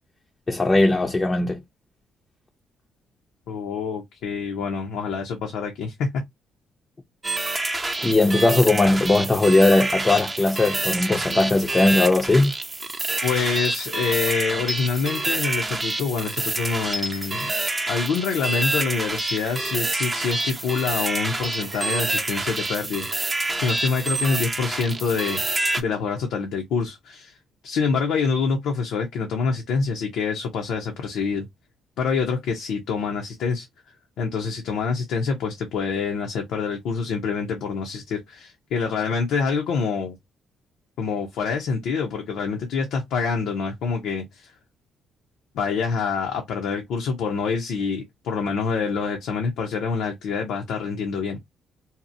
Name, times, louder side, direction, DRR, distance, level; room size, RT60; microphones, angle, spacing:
voice 1, 0.5-1.6 8.0-12.5, left 2 dB, 25° left, 0.5 m, -19 dB
voice 2, 3.5-6.1 13.2-17.5 17.9-25.4 25.8-27.3 27.6-31.5 32.0-33.7 34.2-40.2 41.0-44.5 45.5-51.4, left 5 dB, 85° left, 0.6 m, -26 dB
sound 1, 7.2-25.8, right 2 dB, 25° right, 0.6 m, -27 dB
2.7 x 2.0 x 2.5 m
cardioid pair, 90°, 0 cm